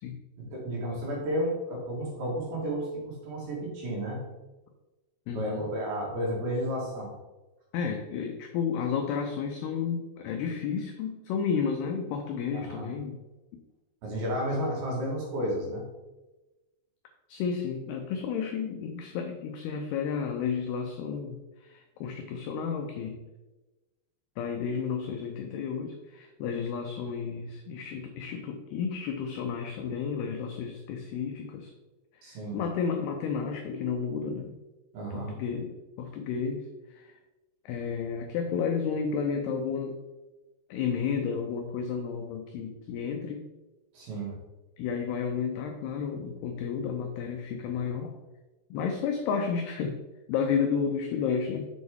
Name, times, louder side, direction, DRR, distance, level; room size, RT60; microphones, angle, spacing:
voice 1, 0.4-4.2 5.3-7.1 12.5-12.9 14.0-15.9 32.2-32.6 34.9-35.3 43.9-44.3, equal, 65° right, -3 dB, 3.1 m, -32 dB
voice 2, 5.3-5.7 7.7-13.2 17.3-23.2 24.4-31.7 32.1-34.5 35.1-37.2 37.7-40.0 40.7-43.5 44.8-48.2 48.7-50.0 50.3-51.7, left 6 dB, 90° left, 4 dB, 2.2 m, -32 dB
7.1 x 6.2 x 3.6 m, 1.1 s
omnidirectional pair, 5.4 m